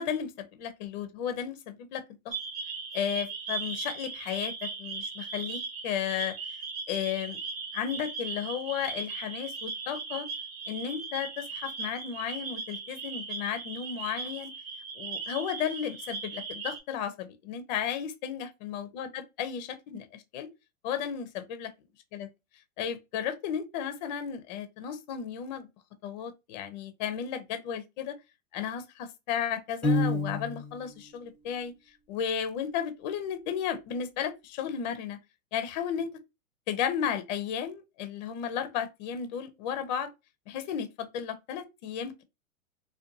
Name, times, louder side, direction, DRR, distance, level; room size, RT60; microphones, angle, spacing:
voice 1, 0.0-2.3 2.9-6.3 6.9-7.4 7.7-10.3 10.7-14.5 15.0-20.5 20.8-21.7 22.1-22.3 22.8-25.7 26.0-28.1 28.5-31.7 32.1-35.2 35.5-36.1 36.7-40.1 40.5-42.2, left 8 dB, 35° left, 0.4 m, -34 dB
sound 1, 2.3-16.8, right 4 dB, 70° right, 0.9 m, -38 dB
Piano, 29.8-30.8, left 2 dB, 5° left, 0.7 m, -27 dB
2.6 x 2.2 x 2.5 m
hypercardioid pair, 125°, 41 cm